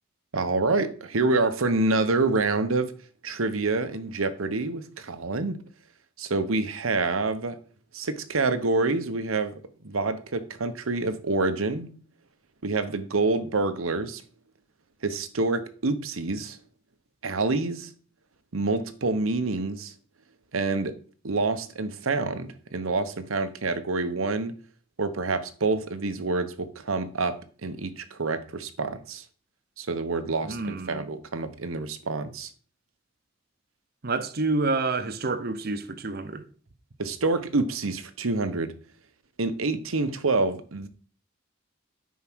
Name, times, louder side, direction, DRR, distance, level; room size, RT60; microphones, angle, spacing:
voice 1, 0.3-2.9 3.2-5.6 6.2-7.6 7.9-9.5 9.8-11.9 12.6-14.2 15.0-16.6 17.2-17.9 18.5-19.9 20.5-20.9 21.2-24.6 25.0-29.2 29.8-32.5 37.0-38.7 39.4-40.9, right 3 dB, 90° right, 1.0 m, -27 dB
voice 2, 30.4-31.0 34.0-36.4, right 3 dB, 50° right, 0.8 m, -28 dB
9.5 x 4.7 x 6.2 m
head